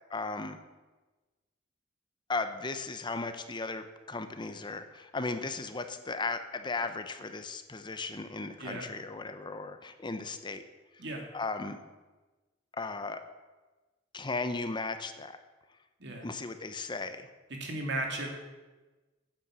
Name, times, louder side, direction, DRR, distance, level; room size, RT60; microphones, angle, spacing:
voice 1, 0.1-0.6 2.3-10.6 11.3-11.8 12.8-13.2 14.1-15.4 16.2-17.3, left 3 dB, 25° left, 9 dB, 0.7 m, -36 dB
voice 2, 16.0-16.3 17.5-18.3, right 1 dB, 65° right, 2 dB, 2.5 m, -35 dB
9.6 x 8.9 x 7.5 m, 1.2 s
head